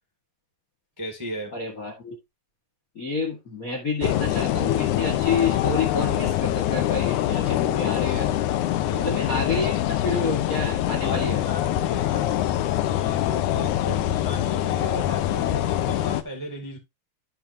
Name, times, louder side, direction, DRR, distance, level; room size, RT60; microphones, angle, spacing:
voice 1, 1.0-1.6 8.8-9.2 11.0-16.8, equal, 15° right, 0.9 m, -36 dB
voice 2, 1.5-2.2 2.9-8.3 9.0-11.4, left 4 dB, 55° left, 0.9 m, -29 dB
sound 1, 4.0-16.2, left 12 dB, 85° left, 1.7 m, -24 dB
12.5 x 5.6 x 2.7 m
omnidirectional pair, 4.4 m